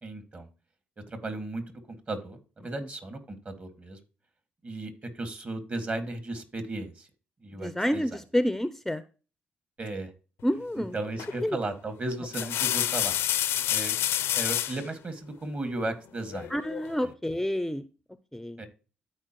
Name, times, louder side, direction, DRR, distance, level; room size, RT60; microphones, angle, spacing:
voice 1, 0.0-0.5 1.0-1.6 2.1-4.0 4.6-7.1 7.4-8.0 9.8-10.1 10.8-13.2 13.7-14.0 14.3-16.6 17.0-17.1 18.6-18.7, right 2 dB, 40° right, 8 dB, 2.1 m, -35 dB
voice 2, 7.6-9.0 10.4-11.0 11.4-11.6 16.5-17.8 18.3-18.6, equal, 5° left, 13 dB, 0.6 m, -28 dB
sound 1, 11.2-11.5 12.1-14.8 16.3-16.9, left 11 dB, 75° left, 0.5 m, -28 dB
13.5 x 4.6 x 3.0 m, 0.35 s
supercardioid pair, 65°, 4 cm